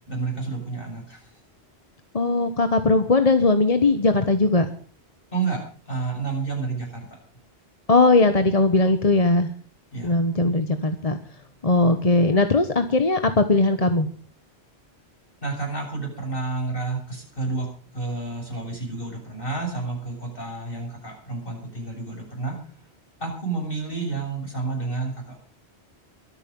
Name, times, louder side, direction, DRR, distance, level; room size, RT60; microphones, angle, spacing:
voice 1, 0.1-1.3 5.3-7.2 9.9-10.1 15.4-17.7 17.9-22.6 23.2-25.1, right 3 dB, 55° left, 0 dB, 7.3 m, -30 dB
voice 2, 2.1-4.7 7.9-9.5 10.0-11.2 11.6-14.1, left 2 dB, 35° left, 9 dB, 1.2 m, -19 dB
23.5 x 9.1 x 5.4 m, 0.43 s
omnidirectional pair, 1.1 m